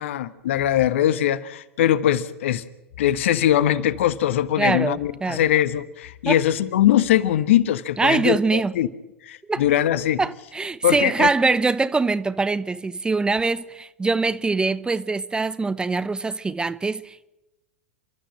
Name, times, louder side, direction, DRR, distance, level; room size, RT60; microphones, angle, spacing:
voice 1, 0.0-2.6 3.0-8.9 9.2-10.2 10.8-11.3, left 12 dB, 65° left, 1.0 m, -21 dB
voice 2, 4.6-5.4 6.3-6.4 8.0-8.7 9.5-9.6 10.2-17.3, right 3 dB, 10° right, 0.7 m, -23 dB
29.0 x 13.0 x 7.7 m
figure-of-eight pair, 90°, 7 cm